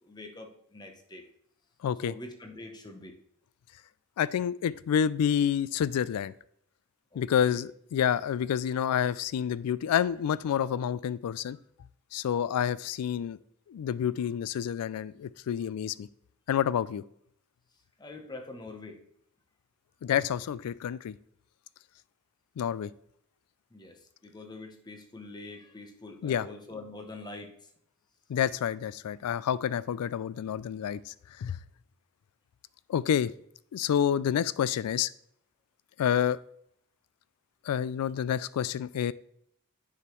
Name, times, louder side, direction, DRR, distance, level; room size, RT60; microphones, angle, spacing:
voice 1, 0.0-1.2 2.0-3.1 7.1-7.6 18.0-19.0 23.7-27.5, left 2 dB, 20° left, 4 dB, 0.9 m, -44 dB
voice 2, 1.8-2.1 4.2-6.3 7.2-11.6 12.1-13.4 13.7-16.1 16.5-17.0 20.0-21.2 22.6-22.9 26.2-26.5 28.3-31.6 32.9-33.3 33.7-35.1 36.0-36.4 37.7-39.1, left 9 dB, 85° left, 19 dB, 0.3 m, -28 dB
9.8 x 4.9 x 3.1 m, 0.71 s
head